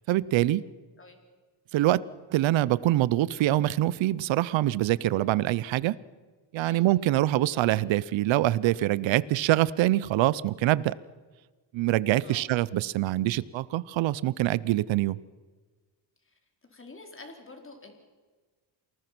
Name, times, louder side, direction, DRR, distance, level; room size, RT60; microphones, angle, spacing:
voice 1, 0.1-0.6 1.7-2.0 2.3-6.0 6.5-11.0 11.7-15.2, right 15 dB, 85° right, 20 dB, 0.7 m, -24 dB
voice 2, 16.7-17.9, left 3 dB, 30° left, 4 dB, 4.6 m, -47 dB
28.0 x 19.5 x 6.1 m, 1.4 s
cardioid pair, 95°, 44 cm